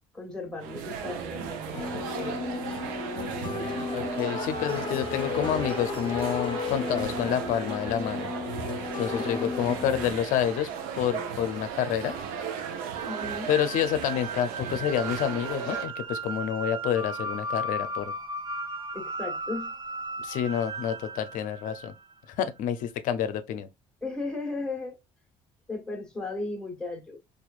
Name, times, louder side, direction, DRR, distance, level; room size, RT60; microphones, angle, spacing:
voice 1, 0.1-2.4 8.8-9.5 13.0-13.5 18.9-19.7 24.0-24.9 25.7-27.2, left 3 dB, 5° left, 1.4 m, -36 dB
sound 1, 0.6-15.9, right 7 dB, 85° right, 0.6 m, -36 dB
sound 2, 1.7-10.1, left 5 dB, 35° left, 0.7 m, -34 dB
voice 2, 3.9-8.3 8.9-12.2 13.5-18.1 20.2-21.9 22.3-23.7, left 9 dB, 70° left, 0.6 m, -28 dB
sound 3, 12.9-22.1, right 2 dB, 30° right, 0.7 m, -36 dB
4.3 x 2.5 x 2.4 m
cardioid pair, 95°, 14 cm